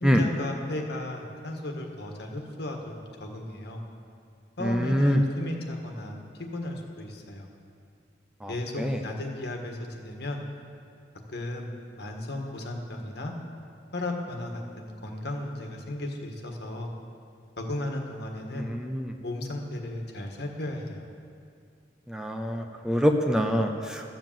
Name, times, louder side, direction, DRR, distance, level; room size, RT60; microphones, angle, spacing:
voice 1, 0.0-3.8 4.6-6.2 6.5-7.5 8.5-10.4 11.3-13.3 13.9-16.9 17.6-18.7 19.2-21.1, left 1 dB, 65° left, 2 dB, 1.6 m, -35 dB
voice 2, 4.6-5.2 8.4-8.5 8.8-9.0 18.6-19.1 22.1-24.0, equal, 5° right, 4 dB, 0.7 m, -25 dB
13.5 x 7.6 x 7.4 m, 2.4 s
head